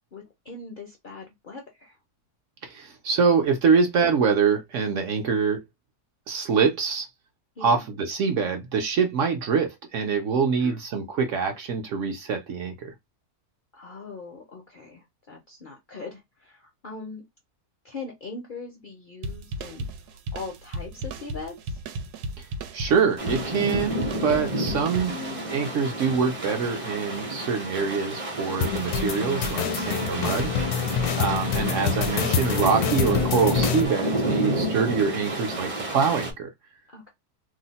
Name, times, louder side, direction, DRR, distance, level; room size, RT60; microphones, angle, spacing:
voice 1, 0.1-2.0 7.6-7.9 10.6-10.8 13.7-17.2 17.8-19.9 20.3-21.8 25.1-25.4 29.7-30.1 36.9-37.1, left 4 dB, 55° left, 0.5 m, -40 dB
voice 2, 2.6-5.6 6.3-7.1 7.6-12.9 22.4-25.1 25.5-30.5 31.2-36.5, right 5 dB, 65° right, 0.8 m, -25 dB
sound 1, 19.2-25.6, right 1 dB, 90° right, 1.1 m, -35 dB
sound 2, 23.2-36.3, right 1 dB, 35° right, 0.5 m, -30 dB
sound 3, 28.6-33.9, left 7 dB, 80° left, 1.1 m, -26 dB
2.7 x 2.0 x 3.9 m
omnidirectional pair, 1.6 m